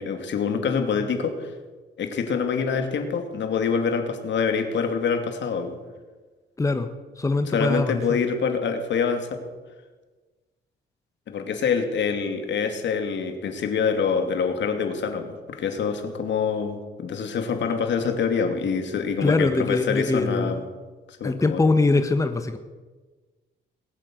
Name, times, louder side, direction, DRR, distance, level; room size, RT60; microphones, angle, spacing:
voice 1, 0.0-1.5 2.0-5.7 7.5-9.4 11.3-20.6 21.2-21.6, left 6 dB, 65° left, 6 dB, 2.5 m, -25 dB
voice 2, 6.6-6.9 7.2-8.0 19.2-20.6 21.2-22.6, left 3 dB, 15° left, 8 dB, 1.1 m, -22 dB
20.0 x 8.7 x 7.7 m, 1.3 s
cardioid pair, 90°, 20 cm